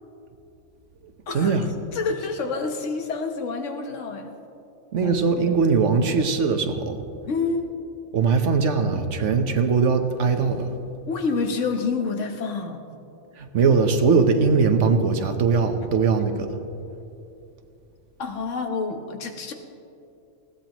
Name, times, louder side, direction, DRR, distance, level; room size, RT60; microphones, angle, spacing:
voice 1, 1.3-1.7 4.9-7.0 8.1-10.7 13.4-16.5, right 5 dB, 80° right, 7 dB, 1.3 m, -21 dB
voice 2, 1.9-4.4 5.0-5.1 7.3-7.6 11.1-12.8 18.2-19.5, left 4 dB, 85° left, 5 dB, 1.4 m, -28 dB
20.0 x 16.0 x 3.0 m, 2.8 s
omnidirectional pair, 1.2 m